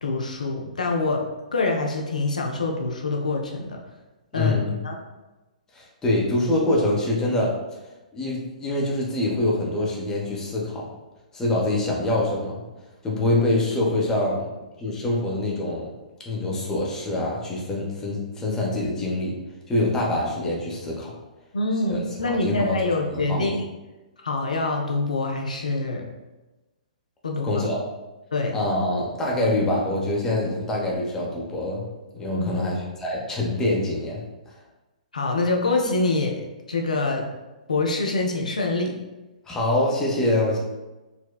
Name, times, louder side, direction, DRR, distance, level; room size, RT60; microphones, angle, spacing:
voice 1, 0.0-1.2 1.5-3.8 4.3-5.0 21.5-23.5 24.2-26.1 27.2-27.6 28.3-28.6 32.3-32.7 35.1-36.4 36.7-37.3 37.7-38.9, left 3 dB, 75° left, 1 dB, 0.4 m, -25 dB
voice 2, 4.3-4.8 5.7-7.5 8.1-10.8 11.3-12.6 13.0-14.5 14.8-15.9 16.3-19.3 19.7-21.1 21.9-23.6 27.4-27.8 28.5-31.9 32.1-34.5 39.5-40.6, left 1 dB, 10° left, -4 dB, 0.7 m, -25 dB
4.1 x 2.1 x 2.3 m, 1.1 s
figure-of-eight pair, 120°, 4 cm